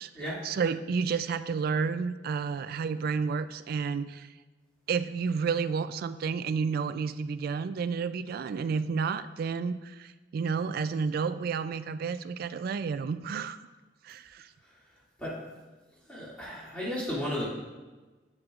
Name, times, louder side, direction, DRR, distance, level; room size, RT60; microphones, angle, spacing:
voice 1, 0.4-4.3 4.9-13.6 14.0-14.5, right 5 dB, 55° right, 13 dB, 0.3 m, -31 dB
voice 2, 16.1-17.4, left 1 dB, 5° left, -8 dB, 2.3 m, -34 dB
8.4 x 7.7 x 2.4 m, 1.3 s
head